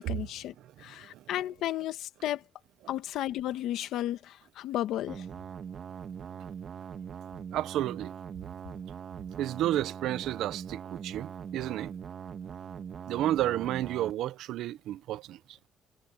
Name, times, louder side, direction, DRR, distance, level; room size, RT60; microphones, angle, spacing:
voice 1, 0.0-0.5 0.8-2.4 2.9-5.2, left 13 dB, 75° left, 1.6 m, -33 dB
sound 1, 5.1-14.1, right 7 dB, 40° right, 1.6 m, -41 dB
voice 2, 7.5-8.1 9.4-11.9 13.1-15.6, right 13 dB, 75° right, 0.8 m, -32 dB
cardioid pair, 155°, 0 cm